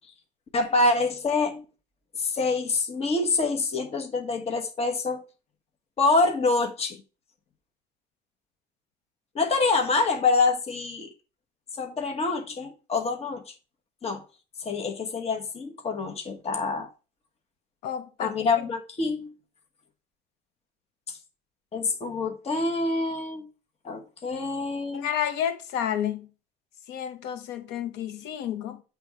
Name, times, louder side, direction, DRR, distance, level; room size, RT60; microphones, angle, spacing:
voice 1, 0.5-1.6 2.2-5.2 6.0-7.0 9.3-11.1 11.8-13.5 14.0-14.2 14.6-16.9 18.2-19.3 21.1-21.2 21.7-23.5 23.8-25.1, left 3 dB, 35° left, 1.2 m, -26 dB
voice 2, 17.8-18.5 24.9-26.3 26.9-28.8, left 9 dB, 90° left, 0.9 m, -30 dB
7.8 x 3.4 x 4.7 m
cardioid pair, 110°, 17 cm